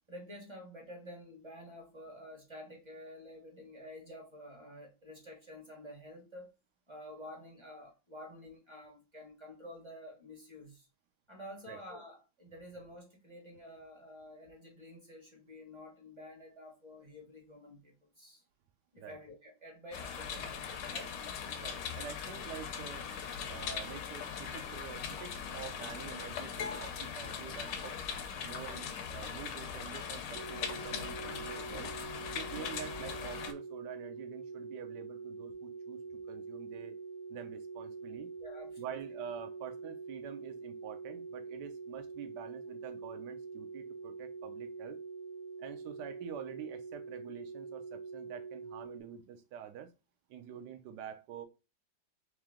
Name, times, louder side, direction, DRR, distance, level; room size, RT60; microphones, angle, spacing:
voice 1, 0.1-6.5 6.9-10.9 11.3-18.4 18.9-20.5 20.9-21.2 38.4-38.9, left 1 dB, 20° right, 1.1 m, -50 dB
sound 1, 19.9-33.5, left 7 dB, 75° left, 1.2 m, -40 dB
voice 2, 21.6-23.0 23.5-28.0 28.4-31.9 32.3-36.9 37.3-38.3 38.8-45.0 45.6-49.9 50.3-51.4, right 9 dB, 70° right, 1.2 m, -47 dB
sound 2, 30.3-49.0, right 4 dB, 90° right, 0.4 m, -45 dB
3.7 x 3.2 x 3.6 m
omnidirectional pair, 2.1 m